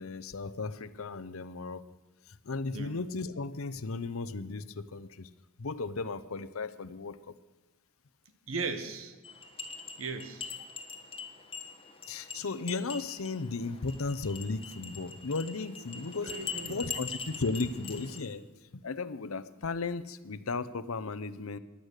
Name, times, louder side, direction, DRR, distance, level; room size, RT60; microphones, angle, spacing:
voice 1, 0.0-1.8 2.3-5.3 5.6-7.3 12.1-16.3 16.6-18.5 18.7-21.6, left 3 dB, 80° left, 12 dB, 0.8 m, -35 dB
voice 2, 8.5-9.1 10.0-10.5 16.2-16.8, right 4 dB, 70° right, 9 dB, 1.4 m, -37 dB
sound 1, 9.2-18.2, left 5 dB, 25° left, 1.4 m, -43 dB
15.5 x 11.5 x 6.6 m, 1.1 s
head